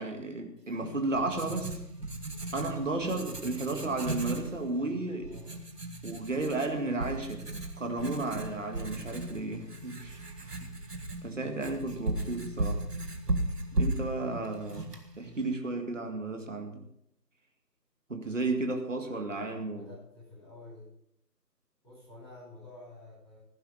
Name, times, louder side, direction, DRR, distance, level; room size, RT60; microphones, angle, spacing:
voice 1, 0.0-1.8 2.5-5.3 6.0-7.5 7.8-12.8 13.7-16.9 18.1-19.9, right 2 dB, 50° right, 4 dB, 2.1 m, -33 dB
Writing, 0.7-15.5, right 2 dB, 70° right, 1.9 m, -36 dB
voice 2, 19.7-20.9 21.8-23.4, left 2 dB, 5° left, -17 dB, 5.8 m, -49 dB
15.5 x 11.0 x 5.6 m, 0.75 s
figure-of-eight pair, 165°, 50 cm